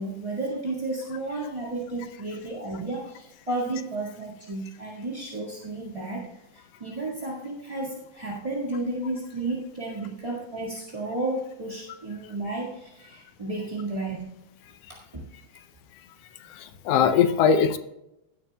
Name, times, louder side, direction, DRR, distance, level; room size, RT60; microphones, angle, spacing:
voice 1, 0.0-6.3 6.5-14.2 15.1-15.2, right 2 dB, 15° right, -5 dB, 1.2 m, -32 dB
voice 2, 16.4-17.8, left 7 dB, 75° left, 10 dB, 1.5 m, -21 dB
16.5 x 8.9 x 2.3 m, 0.85 s
omnidirectional pair, 3.5 m